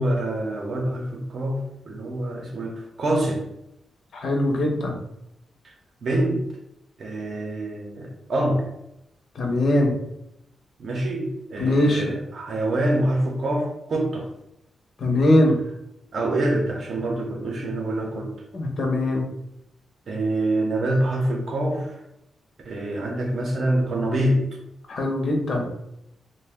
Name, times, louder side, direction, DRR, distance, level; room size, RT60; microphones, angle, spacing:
voice 1, 0.0-3.4 6.0-6.4 7.0-8.7 10.8-14.3 16.1-18.3 20.1-22.0 22.6-24.4, right 1 dB, 50° right, 1 dB, 0.6 m, -25 dB
voice 2, 4.1-4.9 9.4-9.9 11.6-12.0 15.0-15.6 18.5-19.3 24.9-25.7, left 1 dB, 50° left, 1 dB, 0.6 m, -21 dB
2.5 x 2.1 x 3.4 m, 0.83 s
wide cardioid pair, 150°, 0 cm